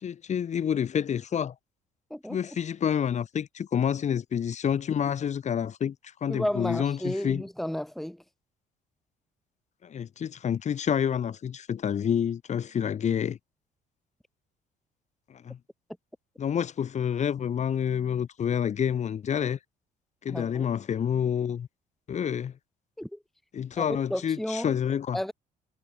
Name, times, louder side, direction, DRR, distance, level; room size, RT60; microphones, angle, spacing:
voice 1, 0.0-1.5 2.3-5.9 6.2-7.4 9.8-13.4 15.4-15.6 16.4-19.6 20.2-21.7 22.1-22.5 23.5-25.2, left 8 dB, 45° left, 1.7 m, -28 dB
voice 2, 6.3-8.2 20.3-20.7 23.0-23.2 23.8-24.7 25.1-25.3, left 1 dB, ahead, 1.6 m, -32 dB
cardioid pair, 110°, 17 cm